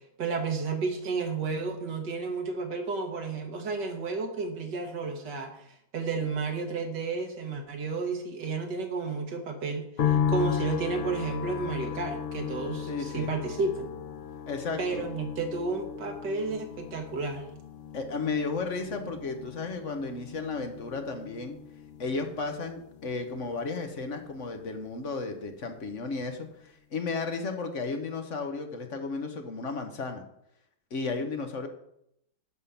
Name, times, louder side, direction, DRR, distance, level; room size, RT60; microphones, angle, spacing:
voice 1, 0.2-13.9 14.8-17.5, right 4 dB, 75° right, 3 dB, 1.9 m, -32 dB
sound 1, 10.0-25.2 25.5-26.4, left 8 dB, 75° left, 0.5 m, -36 dB
voice 2, 12.9-13.3 14.5-15.0 17.9-21.6 22.0-30.2 30.9-31.7, left 4 dB, 50° left, 5 dB, 1.2 m, -34 dB
11.0 x 3.7 x 7.0 m, 0.76 s
omnidirectional pair, 1.8 m